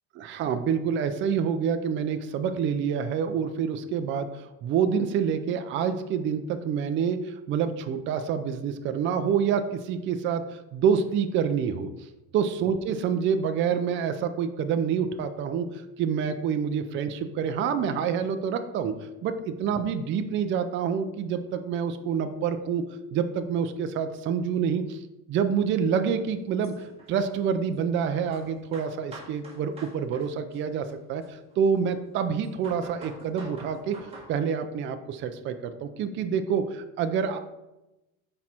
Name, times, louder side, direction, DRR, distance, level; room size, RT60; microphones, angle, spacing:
voice 1, 0.1-11.9 12.3-18.9 19.2-19.3 19.6-22.8 23.1-25.0 25.3-26.7 27.1-34.0 34.3-37.4, right 7 dB, 35° right, 8 dB, 0.4 m, -27 dB
sound 1, 26.6-27.8 28.3-30.3 30.5-32.0 32.4-34.3, right 2 dB, 15° right, 1.8 m, -47 dB
6.2 x 4.3 x 4.2 m, 0.96 s
cardioid pair, 160°, 38 cm